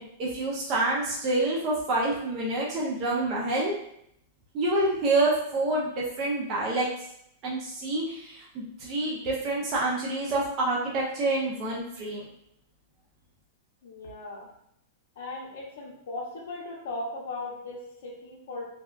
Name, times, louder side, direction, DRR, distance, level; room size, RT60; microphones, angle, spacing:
voice 1, 0.0-3.7 4.5-6.9 7.4-12.2, right 2 dB, 30° right, -5 dB, 0.5 m, -27 dB
voice 2, 13.8-14.5 15.2-18.7, left 2 dB, 70° left, -3 dB, 0.6 m, -38 dB
2.7 x 2.2 x 2.3 m, 0.72 s
supercardioid pair, 160°, 0 cm